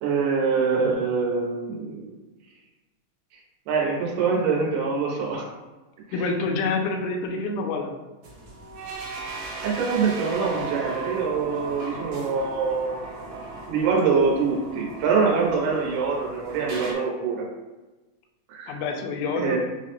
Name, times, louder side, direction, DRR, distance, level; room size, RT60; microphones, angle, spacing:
voice 1, 0.0-2.1 3.7-5.5 9.6-13.3 13.7-17.5 18.5-18.8 19.4-19.6, right 5 dB, 85° right, -2 dB, 2.4 m, -24 dB
voice 2, 6.1-7.9 18.7-19.6, left 3 dB, 80° left, 4 dB, 1.8 m, -27 dB
sound 1, 8.2-16.9, right 3 dB, 70° right, 1.7 m, -37 dB
5.4 x 2.1 x 2.9 m, 1.2 s
omnidirectional pair, 3.6 m